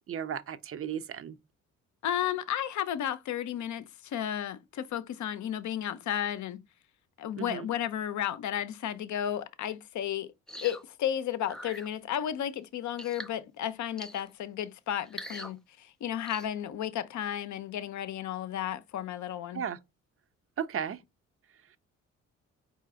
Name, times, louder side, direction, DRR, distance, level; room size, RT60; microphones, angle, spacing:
voice 1, 0.1-1.4 7.4-7.7 19.5-19.8 20.6-21.0, right 8 dB, 35° right, 0.6 m, -35 dB
voice 2, 2.0-6.6 7.2-10.3 10.6-19.6, left 10 dB, 50° left, 0.7 m, -33 dB
sound 1, 10.5-10.8 11.5-11.9 13.0-13.4 14.0-14.3 15.0-15.5 16.2-16.5, equal, ahead, 0.3 m, -43 dB
4.7 x 2.8 x 3.6 m
hypercardioid pair, 50°, 38 cm